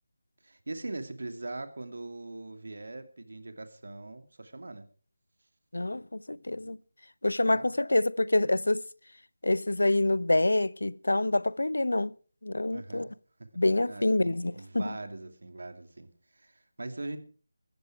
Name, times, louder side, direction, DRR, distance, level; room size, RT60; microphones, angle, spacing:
voice 1, 0.4-4.9 7.4-7.7 12.7-13.1 13.9-16.1 16.3-17.2, right 2 dB, 70° right, 2.5 m, -41 dB
voice 2, 5.7-6.8 7.2-8.8 9.4-12.1 12.4-13.1 13.6-14.9, left 2 dB, 85° left, 0.6 m, -26 dB
15.0 x 14.0 x 4.7 m
figure-of-eight pair, 165°, 0 cm